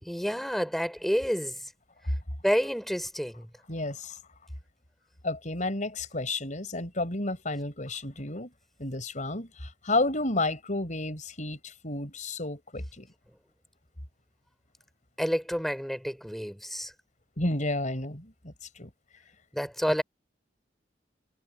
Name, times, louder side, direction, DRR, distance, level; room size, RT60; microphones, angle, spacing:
voice 1, 0.0-1.5 2.4-3.5 15.2-16.9 19.5-20.0, equal, ahead, 4.9 m, -29 dB
voice 2, 3.7-4.2 5.2-8.5 8.8-13.1 17.4-18.9, left 2 dB, 40° left, 5.8 m, -31 dB
head